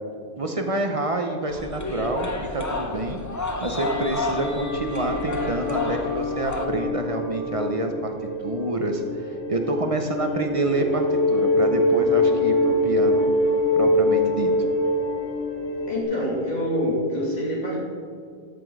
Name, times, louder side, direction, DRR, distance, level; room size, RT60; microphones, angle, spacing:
voice 1, 0.4-3.2 3.6-8.1 8.4-13.3 13.8-14.5, right 2 dB, 35° right, 4 dB, 0.7 m, -27 dB
sound 1, 1.5-6.6, left 2 dB, 20° left, 0.7 m, -31 dB
sound 2, 3.8-16.0, left 1 dB, 90° left, 2.4 m, -24 dB
voice 2, 15.9-17.8, equal, 35° left, -5 dB, 2.7 m, -26 dB
13.0 x 6.0 x 4.7 m, 2.3 s
omnidirectional pair, 1.2 m